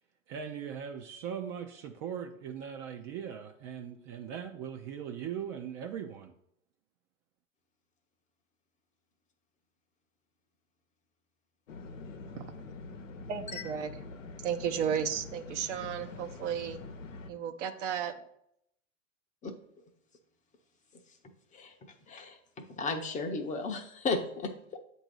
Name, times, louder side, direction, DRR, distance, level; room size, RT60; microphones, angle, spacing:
voice 1, 0.3-6.3, right 8 dB, 40° right, 4 dB, 0.5 m, -40 dB
sound 1, 11.7-17.3, left 3 dB, 90° left, 0.8 m, -45 dB
voice 2, 13.3-13.9 14.4-16.8 17.3-18.1, right 8 dB, 70° right, 6 dB, 0.9 m, -34 dB
voice 3, 22.1-24.8, left 3 dB, 20° left, 4 dB, 0.6 m, -35 dB
7.9 x 2.7 x 6.1 m, 0.74 s
hypercardioid pair, 115°, 38 cm